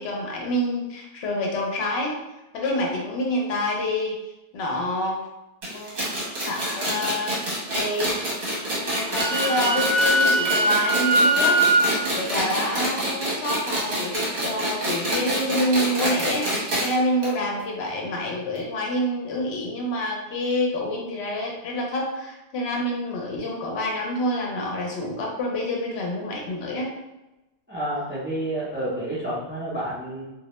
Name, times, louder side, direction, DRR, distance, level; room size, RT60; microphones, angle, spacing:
voice 1, 0.0-2.2 2.5-4.2 4.5-5.2 5.7-6.0 6.4-7.4 7.7-8.2 8.8-11.6 12.2-26.9 28.0-28.1, left 1 dB, 70° left, -1 dB, 0.8 m, -27 dB
sound 1, 5.6-16.9 17.2-17.3 17.6-17.7 18.6-18.7, right 1 dB, 55° right, 0.9 m, -27 dB
Wind instrument woodwind instrument, 8.9-11.8, right 2 dB, 5° left, 1.0 m, -21 dB
voice 2, 27.7-30.3, right 1 dB, 15° right, -8 dB, 0.3 m, -29 dB
2.2 x 2.0 x 2.9 m, 0.99 s
omnidirectional pair, 1.2 m